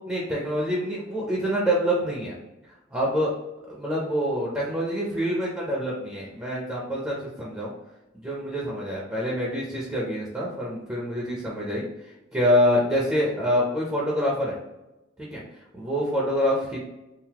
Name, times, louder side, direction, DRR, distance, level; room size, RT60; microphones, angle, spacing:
voice 1, 0.1-2.3 2.9-3.3 3.7-7.7 8.2-11.8 12.3-14.6 15.2-15.4 15.7-16.8, equal, 10° right, -5 dB, 0.7 m, -26 dB
3.8 x 2.6 x 2.9 m, 0.97 s
head